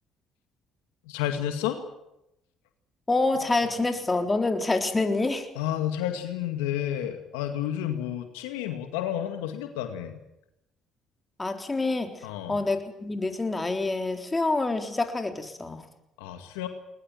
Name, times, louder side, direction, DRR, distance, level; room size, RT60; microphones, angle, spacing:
voice 1, 1.1-1.8 3.6-3.7 5.6-10.1 12.2-12.6 16.2-16.7, left 11 dB, 85° left, 7 dB, 2.1 m, -31 dB
voice 2, 3.1-5.5 11.4-15.8, left 3 dB, 20° left, 5 dB, 3.7 m, -27 dB
21.0 x 20.0 x 9.2 m, 0.87 s
hypercardioid pair, 60°, 0 cm